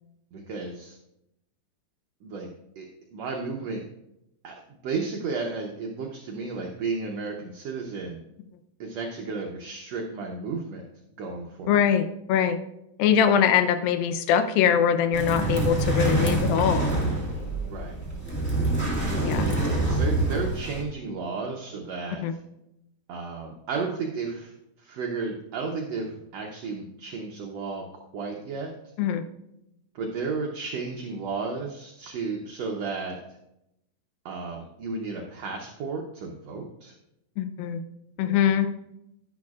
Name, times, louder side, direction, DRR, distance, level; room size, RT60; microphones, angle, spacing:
voice 1, 0.3-1.0 2.2-2.5 2.8-3.9 4.4-4.6 4.8-8.2 8.8-10.9 11.2-11.8 17.7-18.0 19.1-19.4 19.8-22.3 23.1-28.7 29.9-33.2 34.2-37.0, right 4 dB, 75° right, 0 dB, 1.5 m, -33 dB
voice 2, 11.7-12.6 13.0-16.9 19.2-19.5 22.2-22.3 29.0-29.2 37.4-37.8 38.2-38.7, left 8 dB, 85° left, 9 dB, 2.5 m, -22 dB
sound 1, 15.1-20.8, right 2 dB, 15° left, 0.5 m, -26 dB
11.5 x 10.5 x 2.4 m, 0.84 s
omnidirectional pair, 4.0 m